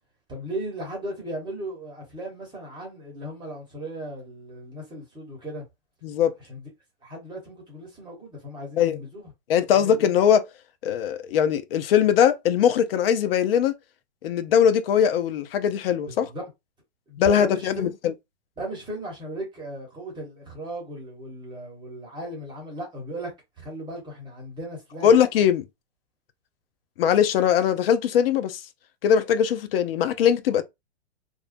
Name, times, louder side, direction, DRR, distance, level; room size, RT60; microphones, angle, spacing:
voice 1, 0.3-5.6 6.5-6.7 7.0-9.3 9.7-9.9 16.1-16.4 17.1-17.7 18.6-23.3 23.6-25.2, right 1 dB, 15° right, 1.0 m, -36 dB
voice 2, 6.0-6.3 8.8-9.0 9.5-10.5 10.8-13.7 14.2-16.3 17.2-18.1 25.0-25.7 27.0-28.6 29.0-30.6, left 8 dB, 60° left, 0.5 m, -21 dB
2.4 x 2.2 x 2.5 m
hypercardioid pair, 135°, 33 cm